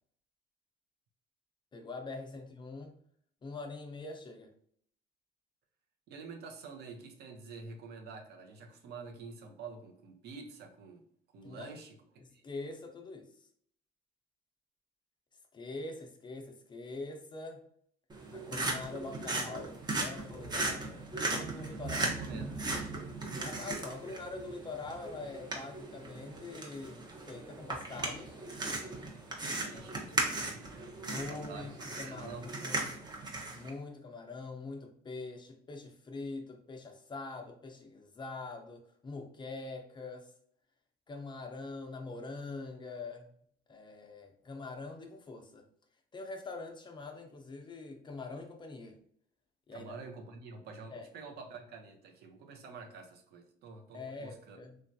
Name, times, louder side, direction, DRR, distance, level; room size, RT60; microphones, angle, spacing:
voice 1, 1.7-3.0 3.4-4.5 11.4-11.7 12.2-13.3 15.5-17.6 18.3-22.1 23.4-28.4 29.7-29.8 31.1-31.7 32.0-33.0 33.5-40.3 41.1-43.3 43.7-45.6 46.1-49.0 49.7-49.9 50.9-51.1 53.9-54.8, left 3 dB, 25° left, 4 dB, 0.5 m, -44 dB
voice 2, 6.1-11.0 11.3-12.0 12.3-12.4 21.7-22.6 29.6-31.0 31.2-32.5 49.7-54.6, right 4 dB, 70° right, 4 dB, 0.6 m, -48 dB
sound 1, 18.1-33.7, right 2 dB, 25° right, 0.7 m, -37 dB
3.1 x 2.3 x 2.6 m, 0.63 s
cardioid pair, 110°, 17 cm